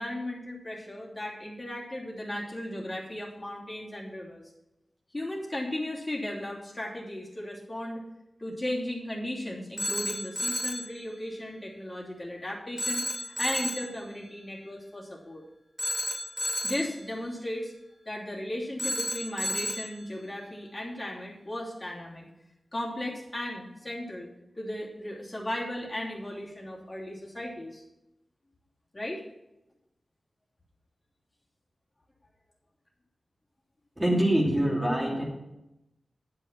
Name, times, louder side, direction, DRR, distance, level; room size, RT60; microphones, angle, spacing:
voice 1, 0.0-4.4 5.1-8.0 8.4-15.4 16.6-17.7 18.0-22.3 22.7-24.3 24.6-27.8 28.9-29.2, left 1 dB, 25° left, -5 dB, 2.9 m, -36 dB
Telephone, 9.8-10.9 12.8-13.9 15.8-17.0 18.8-20.0, equal, 5° left, 1.2 m, -32 dB
voice 2, 34.0-35.2, right 1 dB, 15° right, -3 dB, 2.7 m, -24 dB
10.5 x 6.7 x 7.2 m, 0.92 s
wide cardioid pair, 105°, 0 cm